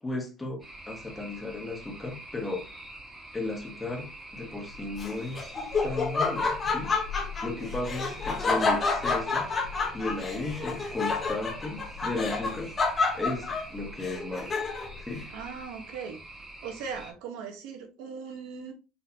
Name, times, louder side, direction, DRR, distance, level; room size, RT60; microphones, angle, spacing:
voice 1, 0.0-2.7 3.3-5.5 5.8-7.0 7.4-9.5 9.9-12.7 13.1-14.5 15.0-15.3, left 2 dB, 15° left, 1.3 m, -35 dB
sound 1, 0.6-17.1, right 1 dB, 15° right, 1.9 m, -46 dB
Laughter, 5.0-15.0, left 4 dB, 30° left, 1.0 m, -29 dB
voice 2, 15.3-16.2 16.6-18.7, right 6 dB, 75° right, 1.2 m, -39 dB
4.2 x 3.9 x 2.8 m
supercardioid pair, 95°, 0 cm